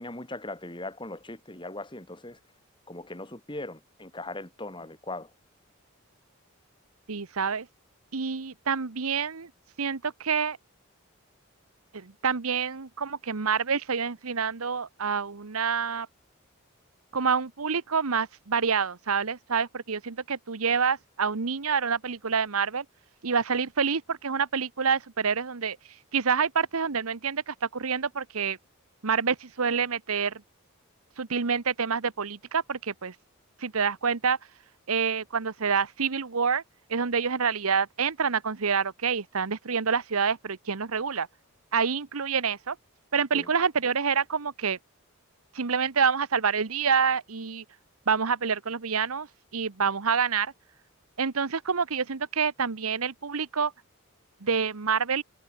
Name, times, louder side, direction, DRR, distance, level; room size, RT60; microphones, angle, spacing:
voice 1, 0.0-2.4 2.9-5.3 43.3-43.5, left 2 dB, 20° left, 2.5 m, -39 dB
voice 2, 7.1-7.7 8.1-9.5 9.8-10.6 11.9-16.1 17.1-22.8 23.2-25.8 26.1-28.6 29.0-30.4 31.2-33.1 33.6-34.4 34.9-36.6 36.9-41.3 41.7-42.8 43.1-44.8 45.5-47.6 48.1-49.3 49.5-50.5 51.2-53.7 54.4-55.2, right 6 dB, 85° right, 1.0 m, -27 dB
head